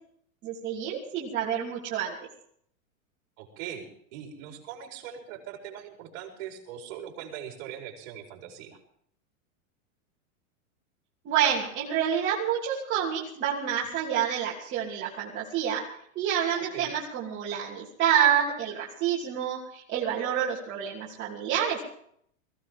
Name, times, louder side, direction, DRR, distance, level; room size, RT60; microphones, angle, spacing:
voice 1, 0.4-2.2 11.2-15.9 16.1-21.8, right 9 dB, 30° right, -6 dB, 3.0 m, -28 dB
voice 2, 3.4-8.8 16.6-16.9, right 9 dB, 45° right, 0 dB, 4.8 m, -41 dB
22.0 x 16.0 x 3.7 m, 0.65 s
supercardioid pair, 155°, 41 cm